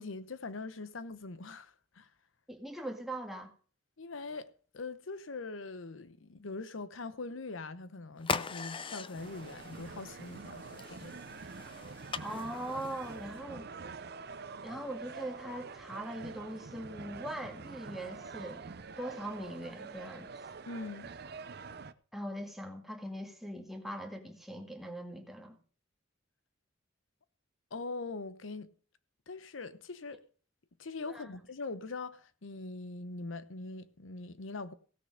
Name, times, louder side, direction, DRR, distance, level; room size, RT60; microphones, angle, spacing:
voice 1, 0.0-2.1 4.0-11.4 20.7-21.1 27.7-28.7 29.3-30.2 30.8-34.7, left 3 dB, 85° left, 0.8 m, -42 dB
voice 2, 2.5-3.5 12.2-13.7 14.6-20.3 22.1-25.6 31.1-31.3, right 1 dB, ahead, 1.8 m, -41 dB
sound 1, 8.2-13.4, left 5 dB, 25° left, 0.5 m, -41 dB
sound 2, 9.2-21.9, right 4 dB, 55° right, 0.7 m, -46 dB
16.0 x 6.7 x 6.4 m
head